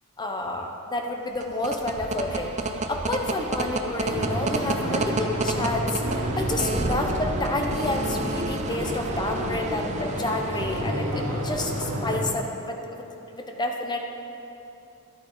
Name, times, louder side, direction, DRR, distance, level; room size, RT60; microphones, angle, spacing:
voice 1, 0.2-2.5 2.9-14.0, left 2 dB, 20° left, 2 dB, 0.8 m, -29 dB
sound 1, 1.3-12.0, right 2 dB, 30° right, 0.6 m, -31 dB
sound 2, 4.0-12.3, equal, 85° right, 1.5 m, -30 dB
11.5 x 8.4 x 3.9 m, 3.0 s
head